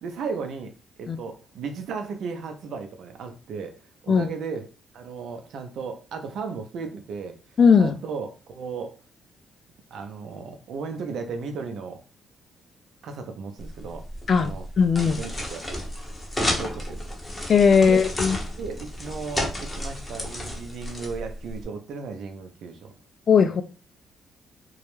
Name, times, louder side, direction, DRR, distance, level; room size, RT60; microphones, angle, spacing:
voice 1, 0.0-4.7 4.9-7.4 7.8-9.0 9.9-12.0 13.0-14.0 14.3-14.7 15.0-15.8 16.4-17.0 17.8-18.1 18.6-22.9, right 5 dB, 70° right, 0.5 m, -35 dB
voice 2, 7.6-7.9 14.3-14.5 14.8-15.2 17.5-18.4 23.3-23.6, left 6 dB, 50° left, 0.3 m, -18 dB
sound 1, 13.6-21.6, left 1 dB, 15° left, 0.7 m, -32 dB
2.2 x 2.0 x 3.0 m
cardioid pair, 90°, 0 cm